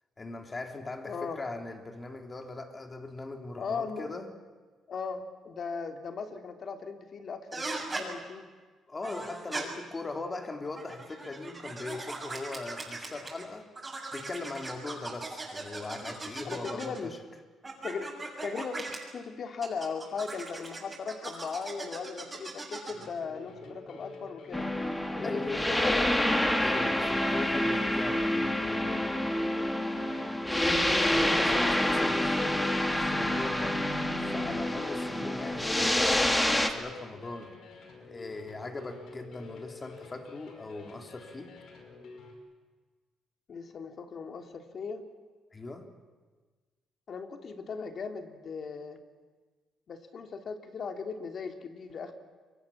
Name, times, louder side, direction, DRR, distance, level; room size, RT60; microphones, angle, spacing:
voice 1, 0.2-4.3 8.9-13.7 14.1-17.2 25.2-25.7 26.6-29.2 31.1-33.8 34.2-37.6 38.0-41.5 45.5-45.9, left 2 dB, 25° left, 3.3 m, -40 dB
voice 2, 1.0-1.4 3.6-4.1 4.9-8.5 16.4-17.1 17.8-18.2 18.4-24.7 25.1-26.1 30.6-30.9 43.5-45.0 47.1-49.0 49.9-52.1, left 5 dB, 55° left, 2.8 m, -38 dB
sound 1, 7.5-8.0 9.0-9.6 10.6-13.4 13.7-17.0 17.6-19.0 19.6-23.1, right 3 dB, 20° right, 7.3 m, -39 dB
sound 2, 22.9-42.3, left 4 dB, 70° left, 5.2 m, -49 dB
sound 3, 24.5-36.7, left 1 dB, 10° left, 2.6 m, -27 dB
27.5 x 23.5 x 7.3 m
cardioid pair, 90°, 0 cm